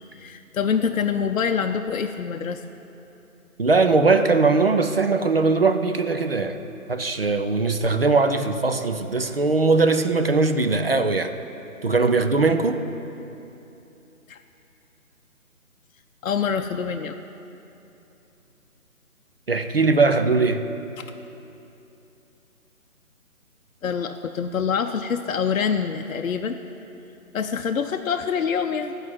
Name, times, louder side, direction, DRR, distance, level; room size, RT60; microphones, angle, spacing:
voice 1, 0.2-2.6 14.3-14.4 16.2-17.2 21.0-21.1 23.8-26.6 27.3-29.0, left 6 dB, 65° left, 5 dB, 0.6 m, -25 dB
voice 2, 3.6-6.6 6.9-11.3 11.8-12.9 19.5-20.7, right 3 dB, 45° right, 8 dB, 0.5 m, -20 dB
14.0 x 4.9 x 7.4 m, 2.8 s
figure-of-eight pair, 160°, 43 cm